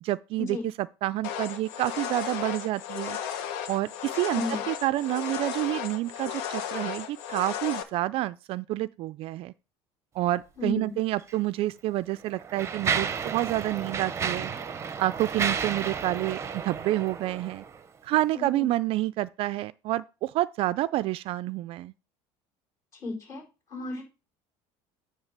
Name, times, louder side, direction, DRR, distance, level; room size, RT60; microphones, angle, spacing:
voice 1, 0.0-3.2 3.7-9.5 10.1-14.5 15.0-17.6 18.0-21.9, right 16 dB, 50° right, 0.3 m, -28 dB
sound 1, 1.2-7.8, left 9 dB, 90° left, 1.1 m, -34 dB
voice 2, 4.3-4.6 10.6-10.9 18.3-18.7 22.9-23.4 23.7-24.0, left 2 dB, 25° left, 4.5 m, -33 dB
Mechanisms, 11.2-11.4 12.1-17.8, right 6 dB, 25° right, 0.8 m, -32 dB
9.0 x 3.3 x 6.6 m
cardioid pair, 140°, 12 cm